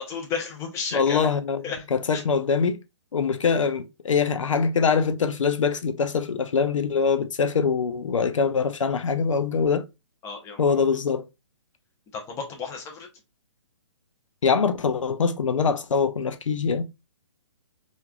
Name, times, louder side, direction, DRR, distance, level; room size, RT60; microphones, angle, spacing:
voice 1, 0.0-1.3 1.6-1.8 2.1-2.2 10.2-10.8 12.1-13.1, left 5 dB, 15° left, 0.7 m, -33 dB
voice 2, 0.9-1.6 1.9-2.8 3.1-9.8 10.6-11.2 14.4-16.8, left 5 dB, 90° left, 0.4 m, -23 dB
3.1 x 2.5 x 2.2 m
hypercardioid pair, 140°, 16 cm